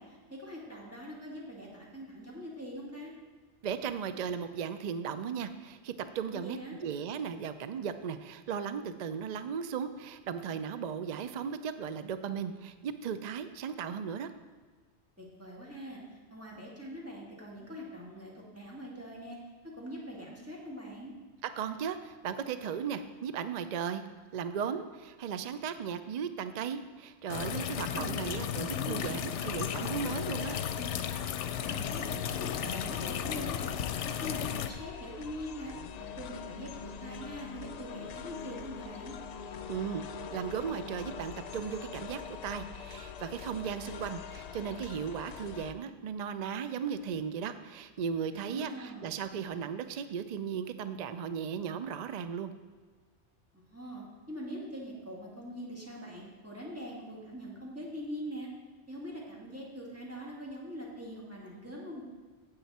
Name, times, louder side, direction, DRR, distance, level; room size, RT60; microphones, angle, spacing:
voice 1, 0.0-3.1 6.3-6.8 15.2-19.4 19.7-21.1 27.7-29.4 31.5-33.8 34.2-35.7 36.0-39.2 48.3-49.1 53.5-58.5 58.9-62.0, equal, 10° right, -4 dB, 2.1 m, -43 dB
voice 2, 3.6-14.3 21.4-24.0 24.3-30.6 39.7-40.0 40.3-52.5, right 7 dB, 60° right, 11 dB, 0.4 m, -36 dB
sound 1, 27.3-34.7, left 9 dB, 85° left, 0.9 m, -34 dB
sound 2, 29.5-45.7, left 7 dB, 60° left, 0.4 m, -44 dB
9.3 x 8.1 x 4.2 m, 1.5 s
omnidirectional pair, 1.2 m